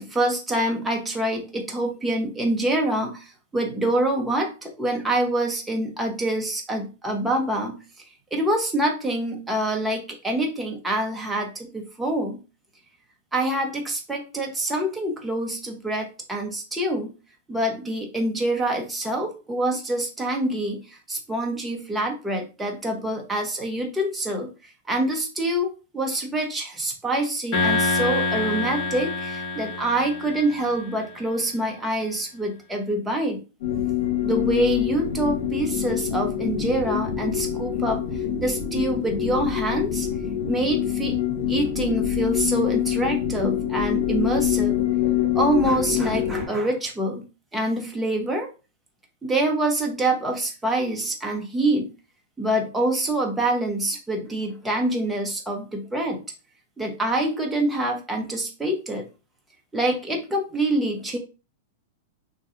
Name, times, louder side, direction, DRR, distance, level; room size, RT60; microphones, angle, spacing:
voice 1, 0.0-7.8 8.3-12.4 13.3-17.1 17.5-24.5 24.9-33.4 34.2-38.0 38.4-40.1 40.5-41.2 41.5-44.8 45.4-47.2 47.5-48.5 49.2-51.9 52.4-56.2 56.8-59.0 59.7-61.2, right 1 dB, 5° right, 1 dB, 0.6 m, -26 dB
sound 1, 27.5-31.0, left 4 dB, 30° left, 1.0 m, -26 dB
sound 2, 33.6-46.5, left 10 dB, 75° left, 1.1 m, -25 dB
2.7 x 2.2 x 3.6 m, 0.31 s
supercardioid pair, 165°, 0 cm